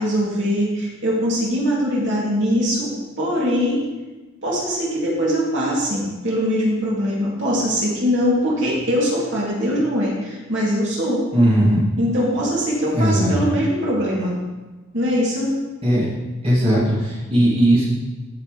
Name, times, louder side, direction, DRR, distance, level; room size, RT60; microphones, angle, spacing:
voice 1, 0.0-3.9 4.4-11.2 12.0-14.4 14.9-15.5, equal, 60° right, -5 dB, 2.8 m, -22 dB
voice 2, 11.3-11.9 12.9-13.5 15.8-16.1 16.4-17.9, equal, 30° right, -7 dB, 2.6 m, -17 dB
15.0 x 6.6 x 3.3 m, 1.2 s
head